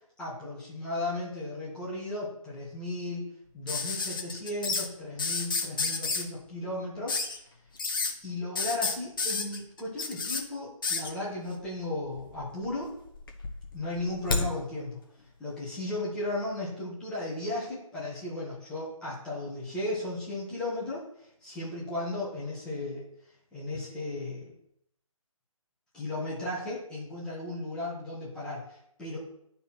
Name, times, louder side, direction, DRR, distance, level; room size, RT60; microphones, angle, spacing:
voice 1, 0.2-3.2 3.5-7.2 8.2-13.0 13.7-15.0 15.4-23.1 23.5-24.5 25.9-29.2, left 2 dB, 5° left, -9 dB, 1.7 m, -35 dB
sound 1, 3.7-4.9 5.2-6.2 7.1-7.4 7.8-8.1 8.6-10.4 10.8-11.1 12.1-12.7 13.1-14.5 15.8-15.9, left 4 dB, 35° left, 1.1 m, -30 dB
11.0 x 4.2 x 4.4 m, 0.75 s
figure-of-eight pair, 160°, 18 cm